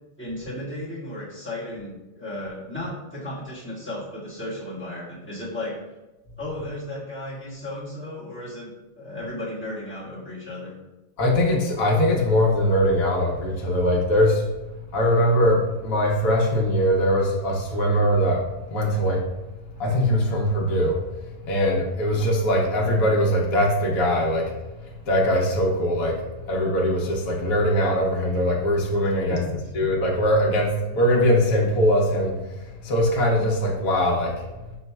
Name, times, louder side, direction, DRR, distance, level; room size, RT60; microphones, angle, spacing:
voice 1, 0.2-5.8 6.4-10.7 29.1-29.6, left 1 dB, 10° left, -9 dB, 1.4 m, -34 dB
voice 2, 11.2-19.2 19.8-21.0 21.5-24.5 24.9-29.4 29.7-34.8, equal, 80° left, -1 dB, 1.2 m, -22 dB
5.4 x 4.0 x 2.2 m, 1.0 s
omnidirectional pair, 1.5 m